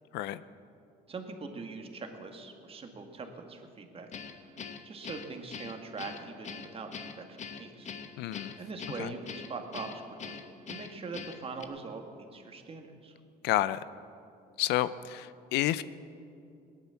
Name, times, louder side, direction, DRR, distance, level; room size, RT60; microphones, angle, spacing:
voice 1, 1.1-7.2 7.5-7.9 8.6-10.4 10.7-13.2, right 4 dB, 35° right, 4 dB, 1.9 m, -42 dB
Guitar, 4.1-11.7, left 6 dB, 45° left, 1.0 m, -43 dB
voice 2, 8.2-8.6 9.0-9.1 13.4-13.8 14.6-15.8, left 14 dB, 85° left, 16 dB, 0.5 m, -30 dB
17.5 x 11.0 x 7.0 m, 2.5 s
cardioid pair, 110°, 17 cm